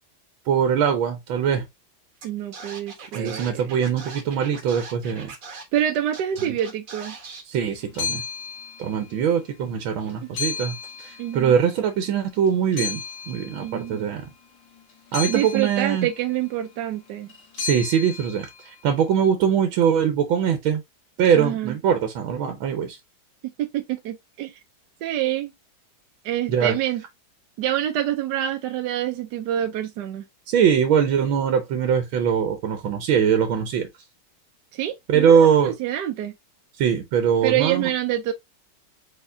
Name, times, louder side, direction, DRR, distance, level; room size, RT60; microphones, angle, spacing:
voice 1, 0.5-1.7 3.1-5.3 7.5-8.2 8.8-13.0 13.3-14.3 15.1-16.1 17.6-18.5 18.8-20.8 21.2-23.0 26.5-26.8 30.5-33.9 35.1-35.7 36.8-37.9, right 7 dB, 85° right, 1.6 m, -22 dB
Scratching (performance technique), 2.2-2.3 2.5-5.8 6.1-7.4, right 4 dB, 50° right, 1.5 m, -40 dB
voice 2, 2.2-3.8 5.7-7.1 11.2-11.6 13.6-14.1 15.3-17.3 21.3-21.7 23.6-24.5 25.0-25.5 26.2-27.0 27.6-30.2 34.7-36.3 37.4-38.3, right 11 dB, 70° right, 1.1 m, -26 dB
sound 1, 7.8-9.5 9.8-12.1 12.5-19.0, left 7 dB, 75° left, 2.1 m, -35 dB
4.4 x 4.3 x 2.6 m
omnidirectional pair, 2.1 m